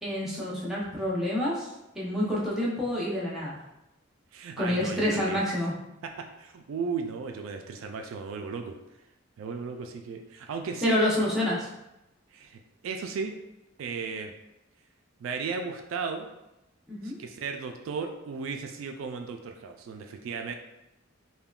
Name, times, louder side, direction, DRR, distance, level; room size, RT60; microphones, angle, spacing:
voice 1, 0.0-1.7 1.9-3.6 4.6-5.7 10.8-11.7 16.9-17.2, left 1 dB, ahead, -7 dB, 0.7 m, -28 dB
voice 2, 4.3-5.4 6.0-8.8 9.4-11.0 12.3-13.3 13.8-14.3 15.2-16.3 17.0-20.5, right 5 dB, 70° right, 4 dB, 0.3 m, -35 dB
3.5 x 2.2 x 2.3 m, 0.92 s
head